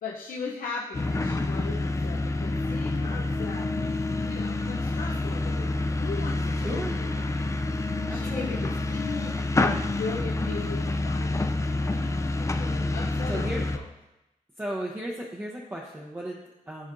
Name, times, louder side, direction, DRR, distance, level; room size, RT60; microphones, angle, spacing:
voice 1, 0.0-3.9 4.2-7.4 8.1-13.7, left 4 dB, 85° left, -2 dB, 0.6 m, -38 dB
sound 1, 0.9-13.8, left 2 dB, 20° left, 0.4 m, -28 dB
voice 2, 6.5-7.0 8.1-8.8 13.3-13.6 14.6-16.9, right 1 dB, 15° right, -3 dB, 0.7 m, -35 dB
12.0 x 4.3 x 2.6 m, 0.96 s
wide cardioid pair, 100°, 14 cm